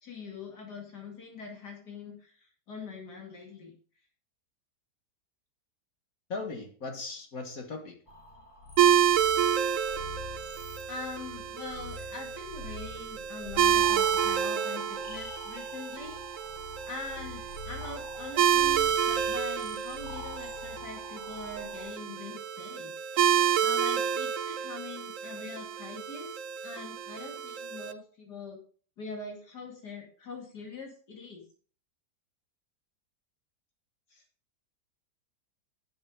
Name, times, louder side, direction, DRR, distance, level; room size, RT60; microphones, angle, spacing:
voice 1, 0.0-2.3 2.7-3.7 10.9-16.2 16.9-22.9 23.6-26.3 26.6-28.6 29.0-31.4 34.1-34.2, left 3 dB, 90° left, 1 dB, 2.9 m, -43 dB
voice 2, 6.3-8.0, left 3 dB, 60° left, 4 dB, 2.0 m, -38 dB
sound 1, 8.1-21.9, left 1 dB, 30° left, 2.0 m, -45 dB
sound 2, 8.8-27.9, right 9 dB, 65° right, 0.9 m, -29 dB
8.7 x 7.6 x 5.2 m, 0.43 s
omnidirectional pair, 1.7 m